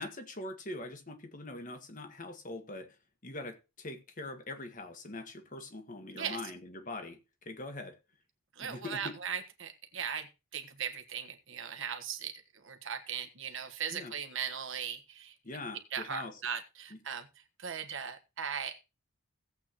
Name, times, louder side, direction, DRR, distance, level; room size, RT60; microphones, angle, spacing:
voice 1, 0.0-3.0 3.2-8.0 8.6-9.2 13.9-14.1 15.4-16.4 16.9-17.0, left 2 dB, 35° left, 1.6 m, -43 dB
voice 2, 8.5-15.3 15.9-17.3 17.6-18.8, right 7 dB, 55° right, 1.4 m, -38 dB
17.0 x 8.2 x 3.0 m
head